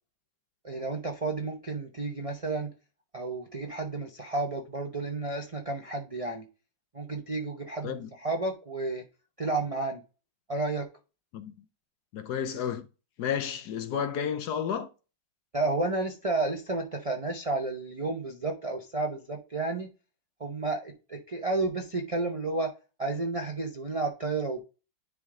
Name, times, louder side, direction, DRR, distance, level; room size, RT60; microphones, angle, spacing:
voice 1, 0.6-2.7 3.1-6.4 6.9-9.0 9.4-10.0 10.5-10.9 15.5-19.9 20.4-22.7 23.0-24.6, right 3 dB, 55° right, 0.3 m, -31 dB
voice 2, 12.1-12.9 13.2-14.9, left 8 dB, 65° left, 1.2 m, -31 dB
10.0 x 3.6 x 3.7 m
omnidirectional pair, 2.1 m